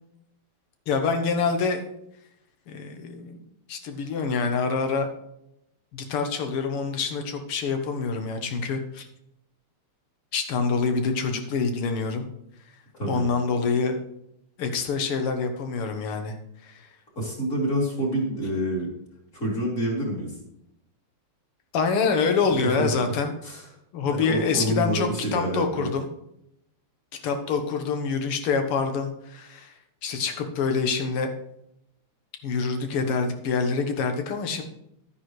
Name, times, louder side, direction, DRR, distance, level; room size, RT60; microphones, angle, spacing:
voice 1, 0.9-1.8 2.7-3.4 3.7-5.1 5.9-9.1 10.3-12.2 13.1-14.0 14.6-16.3 16.6-16.9 21.7-23.3 23.9-26.1 27.2-29.7 30.0-31.3 32.4-34.6, left 5 dB, 80° left, 6 dB, 2.1 m, -26 dB
voice 2, 17.2-18.9 19.3-20.3 22.6-22.9 23.4-23.7 24.1-25.9, right 1 dB, 35° left, -3 dB, 3.6 m, -27 dB
11.5 x 9.4 x 3.2 m, 0.80 s
omnidirectional pair, 2.4 m